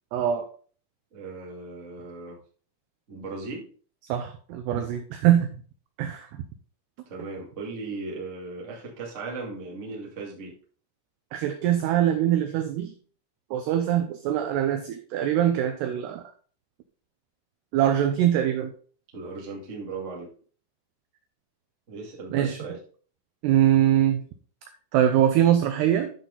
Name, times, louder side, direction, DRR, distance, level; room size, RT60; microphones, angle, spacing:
voice 1, 0.1-0.5 4.1-5.5 6.0-6.3 11.3-12.9 13.5-16.2 17.7-18.7 22.3-22.6 23.4-24.3 24.9-26.1, right 11 dB, 85° right, 7 dB, 2.4 m, -23 dB
voice 2, 1.1-2.4 3.1-3.7 7.1-10.5 19.1-20.3 21.9-22.8, right 3 dB, 35° right, -3 dB, 1.1 m, -37 dB
10.5 x 6.1 x 3.8 m, 0.43 s
omnidirectional pair, 5.7 m